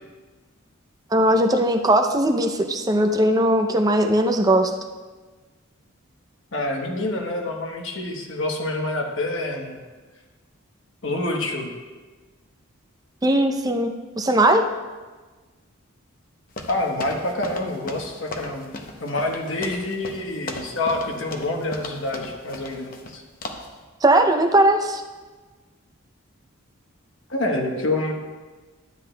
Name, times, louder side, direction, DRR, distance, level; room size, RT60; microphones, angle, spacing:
voice 1, 1.1-4.7 13.2-14.6 24.0-25.0, right 1 dB, 20° right, 6 dB, 0.5 m, -19 dB
voice 2, 6.5-9.8 11.0-11.7 16.7-18.7 19.0-23.2 27.3-28.1, left 2 dB, 60° left, 2 dB, 1.1 m, -27 dB
sound 1, 16.6-23.1 23.4-23.7, left 2 dB, 40° left, 0.7 m, -37 dB
12.0 x 9.4 x 2.2 m, 1.3 s
head